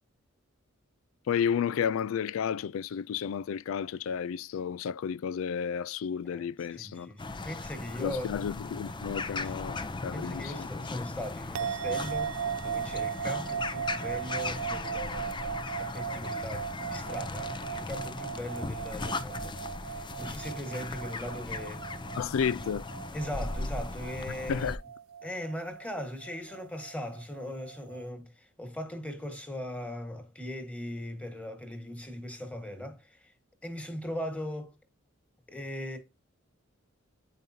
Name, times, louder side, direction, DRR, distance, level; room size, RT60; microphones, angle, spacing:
voice 1, 1.3-7.1 8.0-10.5 22.2-22.8 24.5-24.8, left 7 dB, 75° left, 0.3 m, -32 dB
voice 2, 6.3-8.4 9.4-9.6 10.1-12.3 12.6-19.6 19.9-21.9 23.1-24.7 25.2-33.3 33.6-34.7 35.5-36.0, left 1 dB, 5° left, 1.6 m, -39 dB
sound 1, 7.2-24.8, left 3 dB, 25° left, 0.6 m, -38 dB
sound 2, 11.5-28.1, right 8 dB, 75° right, 0.4 m, -38 dB
9.2 x 5.3 x 2.7 m
head